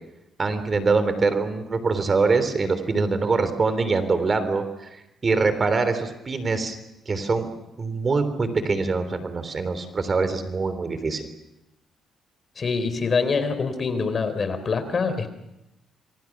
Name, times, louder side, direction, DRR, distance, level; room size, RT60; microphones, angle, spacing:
voice 1, 0.4-6.8 7.0-7.5 7.8-11.2, right 4 dB, 35° right, 11 dB, 3.4 m, -24 dB
voice 2, 12.6-15.3, left 4 dB, 40° left, 10 dB, 3.7 m, -25 dB
28.5 x 23.5 x 6.0 m, 0.91 s
cardioid pair, 90°, 0 cm